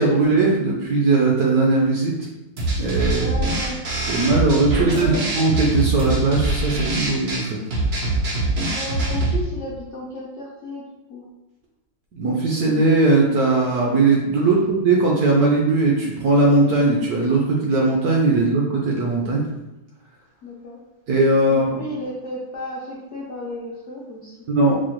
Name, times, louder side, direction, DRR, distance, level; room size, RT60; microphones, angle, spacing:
voice 1, 0.0-2.3 2.8-3.2 4.1-7.6 12.1-19.4 21.1-21.8 24.5-24.8, right 3 dB, 70° right, -2 dB, 0.9 m, -19 dB
sound 1, 2.6-9.4, right 2 dB, 85° right, 0.5 m, -23 dB
voice 2, 3.0-3.8 4.8-5.2 8.6-10.8 11.1-11.3 20.4-20.8 21.5-24.4, left 1 dB, 70° left, -5 dB, 0.6 m, -33 dB
4.7 x 2.1 x 2.9 m, 0.97 s
omnidirectional pair, 2.1 m